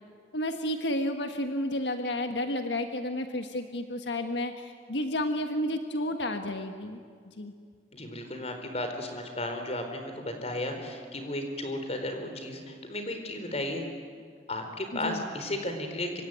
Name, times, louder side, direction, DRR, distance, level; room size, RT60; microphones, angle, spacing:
voice 1, 0.3-7.0 7.2-7.5 14.9-15.2, left 1 dB, 85° left, 6 dB, 1.5 m, -31 dB
voice 2, 7.9-13.9 14.5-16.2, left 1 dB, 35° left, 5 dB, 4.3 m, -34 dB
26.0 x 24.5 x 9.3 m, 2.1 s
head